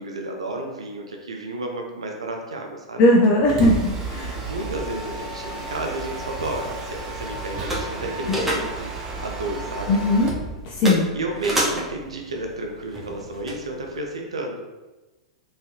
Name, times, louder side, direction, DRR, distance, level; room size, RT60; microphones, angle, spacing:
voice 1, 0.0-3.0 4.2-8.9 9.2-10.0 10.9-14.6, right 2 dB, 75° right, 2 dB, 0.5 m, -32 dB
voice 2, 3.0-3.8 4.1-4.4 9.9-10.3 10.7-11.1, left 1 dB, 40° left, -1 dB, 0.6 m, -18 dB
Mechanisms, 3.2-10.5, right 3 dB, 30° right, 0.8 m, -32 dB
sound 1, 6.0-14.0, equal, 10° right, 1.1 m, -32 dB
4.4 x 3.3 x 2.7 m, 1.1 s
figure-of-eight pair, 100°, 3 cm